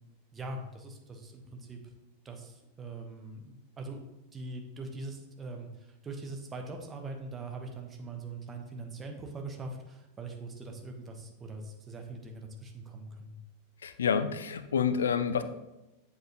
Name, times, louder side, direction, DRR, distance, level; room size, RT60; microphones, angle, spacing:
voice 1, 0.3-1.8 2.2-4.0 4.3-13.4, right 3 dB, 20° right, 3 dB, 1.2 m, -42 dB
voice 2, 13.8-15.4, left 7 dB, 65° left, 11 dB, 0.5 m, -28 dB
7.8 x 7.1 x 3.0 m, 0.96 s
figure-of-eight pair, 90°, 0 cm